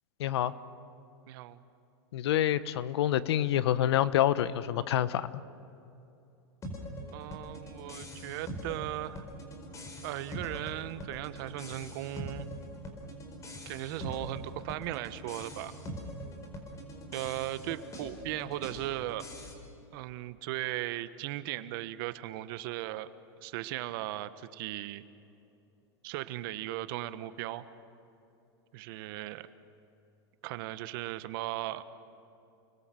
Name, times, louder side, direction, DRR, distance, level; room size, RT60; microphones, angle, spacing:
voice 1, 0.2-0.5 2.1-5.3, left 11 dB, 75° left, 15 dB, 1.0 m, -27 dB
voice 2, 1.3-1.6 7.1-9.2 10.0-12.5 13.6-15.7 17.1-19.3 19.9-23.1 23.4-25.0 26.0-27.6 28.7-29.5 30.4-31.8, right 15 dB, 60° right, 12 dB, 1.2 m, -37 dB
sound 1, 6.6-19.5, equal, 25° left, 4.7 m, -43 dB
29.5 x 21.0 x 7.7 m, 2.8 s
supercardioid pair, 130°, 14 cm